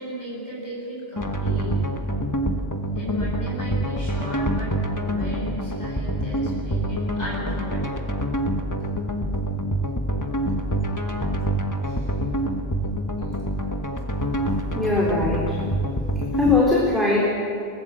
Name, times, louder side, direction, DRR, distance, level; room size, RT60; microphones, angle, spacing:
voice 1, 0.0-1.7 2.9-8.1 11.8-12.2 13.2-13.5, equal, 40° left, -4 dB, 8.1 m, -36 dB
sound 1, 1.2-16.6, right 1 dB, 15° left, 1.3 m, -26 dB
voice 2, 14.7-15.6 16.3-17.3, left 3 dB, ahead, -5 dB, 3.7 m, -20 dB
24.0 x 19.5 x 7.8 m, 2.4 s
omnidirectional pair, 1.1 m